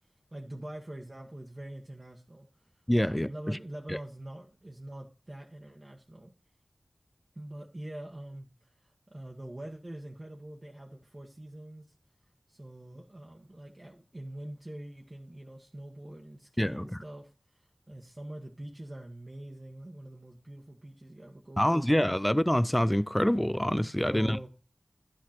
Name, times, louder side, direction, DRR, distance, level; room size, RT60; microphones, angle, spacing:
voice 1, 0.3-6.3 7.3-11.8 12.5-21.9 24.0-24.5, right 1 dB, 35° right, 1.3 m, -44 dB
voice 2, 2.9-3.6 3.9-4.0 16.6-17.0 21.6-24.4, equal, 10° left, 0.4 m, -26 dB
11.0 x 6.4 x 4.3 m
wide cardioid pair, 50°, 0 cm